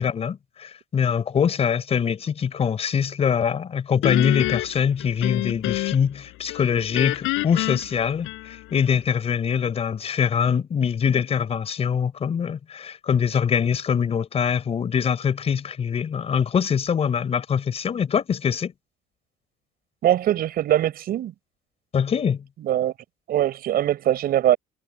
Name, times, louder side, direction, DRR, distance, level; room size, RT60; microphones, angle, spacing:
voice 1, 0.0-18.7 21.9-22.4, left 7 dB, 30° left, 4.6 m, -23 dB
Guitar, 4.0-6.2 6.5-8.8, left 19 dB, 90° left, 7.5 m, -27 dB
voice 2, 20.0-21.3 22.6-22.9 23.3-24.6, right 12 dB, 50° right, 5.7 m, -22 dB
cardioid pair, 165°, 19 cm